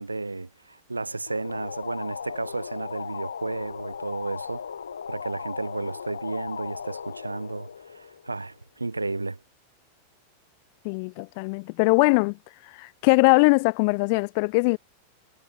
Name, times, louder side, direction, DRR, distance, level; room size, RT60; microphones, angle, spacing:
voice 1, 0.0-4.6 5.1-9.4, right 3 dB, 80° right, 2.0 m, -33 dB
sound 1, 1.3-8.6, left 7 dB, 70° left, 1.7 m, -37 dB
voice 2, 10.8-12.4 12.8-14.8, left 32 dB, 45° left, 0.8 m, -21 dB
figure-of-eight pair, 90°, 0 cm